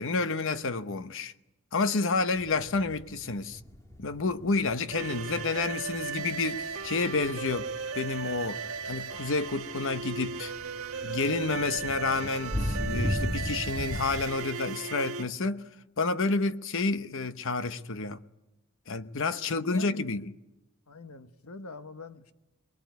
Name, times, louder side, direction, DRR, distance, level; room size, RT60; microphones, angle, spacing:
voice 1, 0.0-1.3 1.7-3.6 4.0-7.7 7.9-8.6 8.8-10.5 11.0-15.7 16.0-18.2 18.9-20.3, left 3 dB, 60° left, 0.9 m, -30 dB
sound 1, 2.4-7.8 8.2-14.2, left 1 dB, 15° left, 2.1 m, -36 dB
sound 2, 4.9-15.2, right 5 dB, 80° right, 1.4 m, -36 dB
voice 2, 19.4-20.2 20.9-22.3, left 3 dB, 85° left, 1.3 m, -44 dB
23.5 x 22.0 x 9.4 m
head